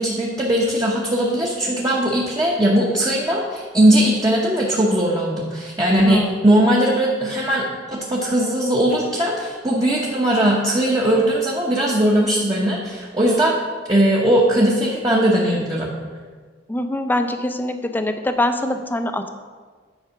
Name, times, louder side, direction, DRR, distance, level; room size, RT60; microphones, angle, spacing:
voice 1, 0.0-7.6 7.9-13.6 13.9-16.0, right 1 dB, 20° right, -3 dB, 0.9 m, -19 dB
voice 2, 16.7-19.3, left 1 dB, 10° left, 7 dB, 0.5 m, -23 dB
9.7 x 4.8 x 5.7 m, 1.5 s
head